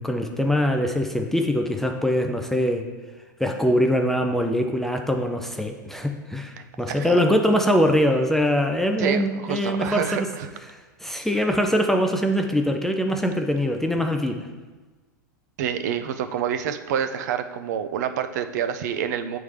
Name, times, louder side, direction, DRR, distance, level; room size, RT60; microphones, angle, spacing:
voice 1, 0.0-2.8 3.4-10.3 11.0-14.5, equal, 5° left, 4 dB, 0.4 m, -23 dB
voice 2, 6.6-7.2 9.0-10.5 15.6-19.4, right 8 dB, 60° right, 9 dB, 0.5 m, -28 dB
8.5 x 3.5 x 3.2 m, 1.3 s
hypercardioid pair, 105°, 10 cm